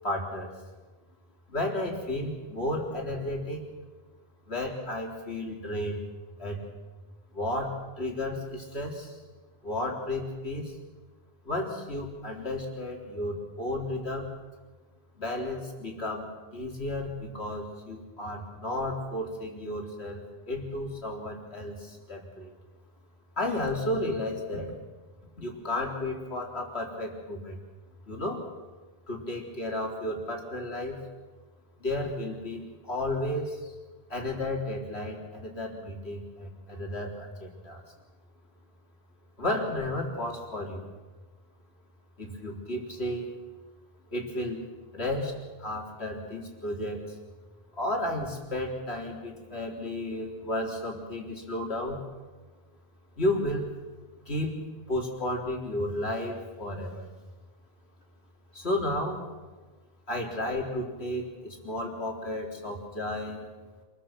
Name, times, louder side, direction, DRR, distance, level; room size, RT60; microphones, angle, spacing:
voice 1, 0.0-0.5 1.5-3.6 4.5-6.0 6.4-6.6 7.3-9.2 9.6-10.8 11.4-14.3 15.2-22.5 23.4-24.8 25.4-27.6 28.1-28.4 29.1-31.0 31.8-33.7 34.1-37.8 39.4-40.9 42.2-43.3 44.1-44.6 44.9-47.2 47.7-52.0 53.2-53.7 54.3-57.1 58.5-59.3 60.1-63.5, left 1 dB, 80° left, 0 dB, 4.2 m, -33 dB
28.0 x 21.5 x 6.1 m, 1.3 s
omnidirectional pair, 1.1 m